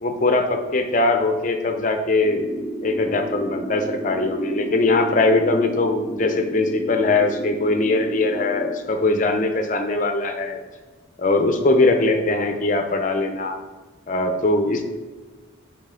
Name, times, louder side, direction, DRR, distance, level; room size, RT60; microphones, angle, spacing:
voice 1, 0.0-10.6 11.2-13.6 14.1-14.8, left 2 dB, 40° left, 6 dB, 0.6 m, -21 dB
sound 1, 2.2-8.7, right 1 dB, 15° left, 1.0 m, -31 dB
7.4 x 4.5 x 3.7 m, 1.3 s
head